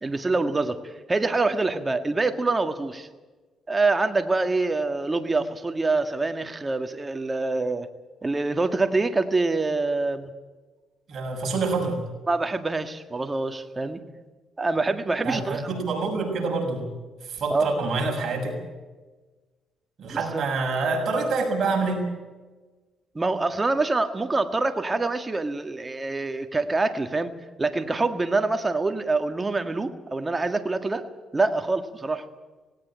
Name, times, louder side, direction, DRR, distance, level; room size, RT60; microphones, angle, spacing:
voice 1, 0.0-3.1 3.7-7.9 8.2-10.3 12.3-14.0 14.6-15.7 17.5-17.7 20.1-20.4 23.2-27.3 27.6-31.1 31.3-32.2, right 3 dB, 20° right, 7 dB, 1.8 m, -25 dB
voice 2, 11.1-12.0 15.2-16.9 17.3-18.6 20.0-22.1, right 3 dB, 55° right, 2 dB, 6.8 m, -26 dB
18.5 x 18.0 x 9.0 m, 1.3 s
cardioid pair, 90°, 0 cm